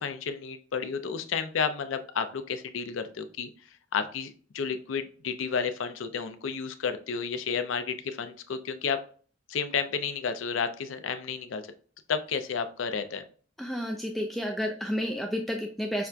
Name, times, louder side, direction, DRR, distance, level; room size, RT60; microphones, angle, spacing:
voice 1, 0.0-3.5 3.9-9.0 9.5-11.6 12.1-13.2, left 6 dB, 70° left, 9 dB, 0.5 m, -31 dB
voice 2, 13.6-16.1, equal, ahead, 1 dB, 0.3 m, -31 dB
5.7 x 2.2 x 2.4 m, 0.42 s
head